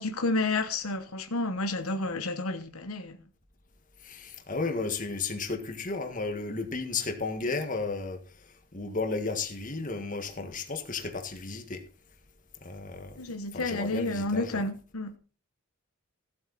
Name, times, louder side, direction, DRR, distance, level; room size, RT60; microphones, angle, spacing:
voice 1, 0.0-3.2 13.2-15.2, left 2 dB, 85° left, 1.2 m, -30 dB
voice 2, 4.1-8.2 8.7-11.8 12.6-13.1 13.5-14.6, left 3 dB, 40° left, 1.7 m, -33 dB
15.5 x 8.0 x 4.1 m
head